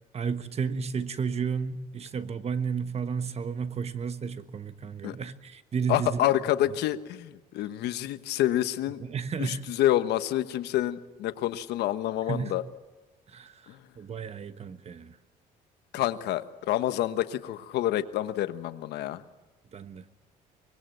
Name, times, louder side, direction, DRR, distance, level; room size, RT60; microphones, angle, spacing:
voice 1, 0.1-6.2 9.0-9.7 12.3-12.6 13.3-13.6 14.0-15.1 19.7-20.0, right 6 dB, 40° right, 1.3 m, -32 dB
voice 2, 5.9-9.0 9.4-12.6 13.7-13.8 15.9-19.2, left 13 dB, 80° left, 1.2 m, -28 dB
24.5 x 20.0 x 7.8 m
cardioid pair, 110°, 17 cm